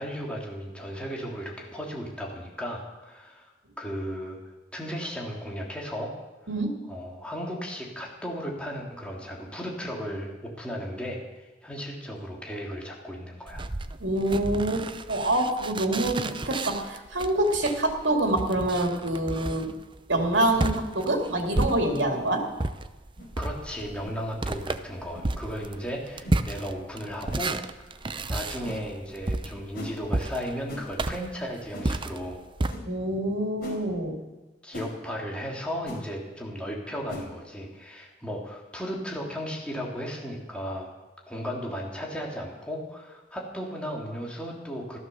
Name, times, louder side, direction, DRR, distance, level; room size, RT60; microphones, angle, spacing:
voice 1, 0.0-3.5 3.8-4.4 4.7-6.1 6.9-13.6 23.4-27.9 28.3-32.4 34.6-40.9 41.3-45.0, equal, 5° left, -2 dB, 3.1 m, -35 dB
sound 1, 13.5-22.2 22.6-32.7, right 2 dB, 30° right, 0.6 m, -32 dB
voice 2, 14.0-19.7 20.1-22.4 32.8-34.2, right 1 dB, 80° right, 3 dB, 2.6 m, -26 dB
sound 2, 22.1-22.3 23.2-23.4 24.0-24.2 25.1-25.3 26.2-26.4 27.3-27.4 28.6-28.8 29.7-30.0 30.7-30.9 31.7-31.9 32.7-32.9 33.6-33.8 34.7-34.9 35.8-36.0 37.1-37.3, left 1 dB, 60° left, 4.3 m, -40 dB
14.0 x 13.0 x 7.0 m, 1.1 s
head